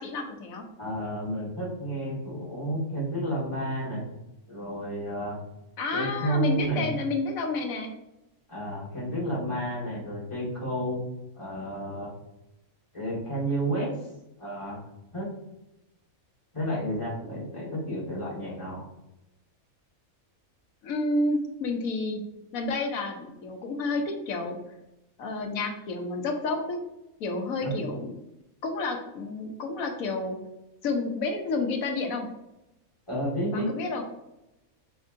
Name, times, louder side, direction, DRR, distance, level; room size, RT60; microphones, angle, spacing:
voice 1, 0.0-0.6 5.8-7.9 20.8-22.2 22.5-24.6 25.2-26.8 27.2-28.1 28.6-30.4 30.8-32.3 33.5-34.0, left 3 dB, 80° left, 3 dB, 1.2 m, -30 dB
voice 2, 0.8-4.0 4.5-5.4 5.9-6.9 8.5-11.0 11.3-12.1 12.9-14.1 14.4-14.8 15.1-15.3 16.5-18.9 27.6-27.7 33.1-33.7, right 1 dB, 20° left, -6 dB, 1.7 m, -31 dB
5.3 x 3.6 x 2.5 m, 0.91 s
omnidirectional pair, 1.5 m